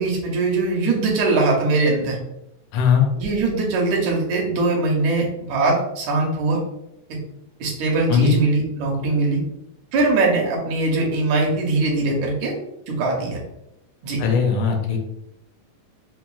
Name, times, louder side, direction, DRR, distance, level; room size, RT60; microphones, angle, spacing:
voice 1, 0.0-2.2 3.2-6.6 7.6-9.4 9.9-12.5 12.9-13.4 14.0-14.2, right 3 dB, 75° right, -2 dB, 2.1 m, -21 dB
voice 2, 2.7-3.1 8.1-8.4 14.2-15.0, left 6 dB, 80° left, 3 dB, 2.0 m, -18 dB
5.8 x 2.2 x 2.3 m, 0.85 s
omnidirectional pair, 3.4 m